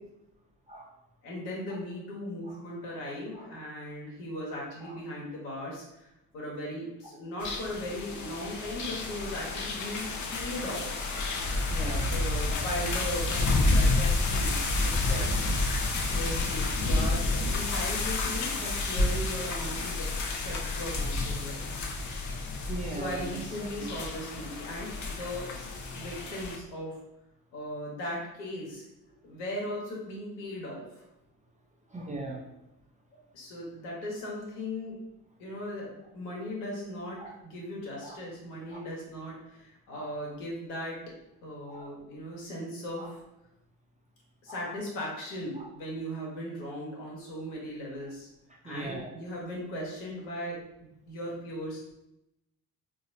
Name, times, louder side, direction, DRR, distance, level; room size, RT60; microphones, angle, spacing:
voice 1, 1.2-6.1 6.3-10.1 10.3-11.0 12.1-15.4 16.0-21.6 22.9-26.9 27.5-28.8 29.2-31.0 33.3-35.0 35.4-41.0 41.4-43.2 44.4-48.3 48.6-52.0, left 1 dB, 75° left, -4 dB, 1.3 m, -38 dB
sound 1, 7.4-26.6, left 2 dB, 40° left, 0.7 m, -30 dB
voice 2, 11.3-12.4 22.7-23.7 31.9-32.4 37.2-37.3 38.0-38.2 38.7-38.8 39.9-40.1 41.7-41.9 43.0-43.1 44.5-44.6 45.6-45.7 48.6-49.1, right 2 dB, 15° right, -1 dB, 0.7 m, -40 dB
3.9 x 2.8 x 2.7 m, 0.86 s
figure-of-eight pair, 50°, 48 cm